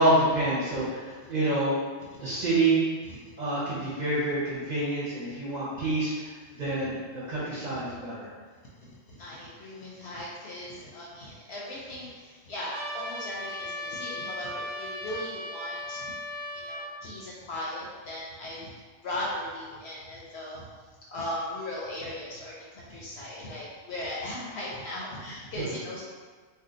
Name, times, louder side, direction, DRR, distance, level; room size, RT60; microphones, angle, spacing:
voice 1, 0.0-1.8 2.2-2.8 3.4-8.3 25.6-25.7, right 2 dB, 40° right, -9 dB, 0.8 m, -27 dB
voice 2, 8.8-16.1 16.5-18.7 19.0-20.7 21.1-26.0, left 1 dB, 60° left, -5 dB, 0.8 m, -38 dB
Trumpet, 12.7-16.9, left 1 dB, 75° right, 0.9 m, -37 dB
2.6 x 2.3 x 3.8 m, 1.5 s
omnidirectional pair, 1.4 m